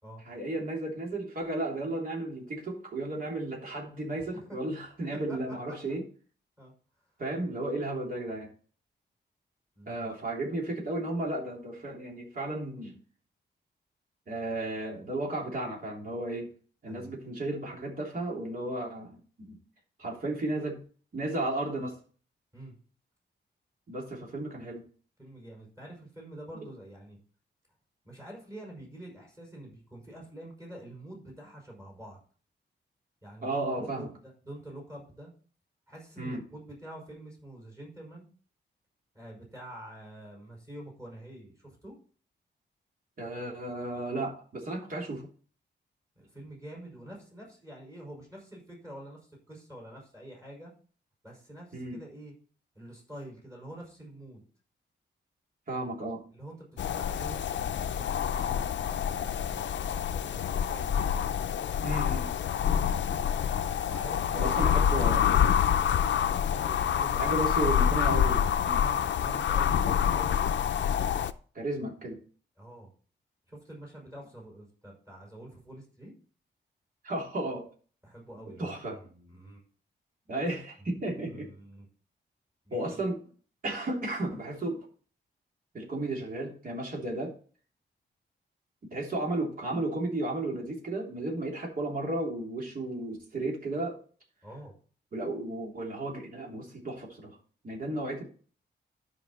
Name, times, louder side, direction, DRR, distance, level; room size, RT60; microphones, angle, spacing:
voice 1, 0.2-6.0 7.2-8.5 9.9-12.9 14.3-16.5 16.8-19.6 20.0-20.8 21.1-21.9 23.9-24.8 33.4-34.1 36.2-36.4 43.2-45.3 51.7-52.0 55.7-56.2 61.8-62.3 64.3-65.3 67.1-68.8 71.5-72.2 77.0-77.7 78.6-79.0 80.3-81.5 82.7-83.2 83.6-84.9 85.7-87.3 88.9-94.0 95.1-97.4 97.6-98.2, right 2 dB, 50° right, -1 dB, 3.2 m, -34 dB
voice 2, 9.8-10.2 16.9-17.1 22.5-22.8 25.2-27.2 28.0-32.2 33.2-34.1 34.4-35.3 35.9-38.3 39.1-41.9 46.2-50.7 51.2-52.3 52.7-54.4 56.3-61.1 63.9-64.9 66.5-67.4 68.7-70.4 72.6-72.9 73.5-76.1 78.0-79.6 80.8-80.9 81.3-81.9 82.6-83.0 94.4-94.7, right 1 dB, 15° right, -1 dB, 5.3 m, -46 dB
sound 1, 56.8-71.3, left 8 dB, 75° left, 0.6 m, -27 dB
12.5 x 5.5 x 4.2 m, 0.42 s
wide cardioid pair, 135°, 19 cm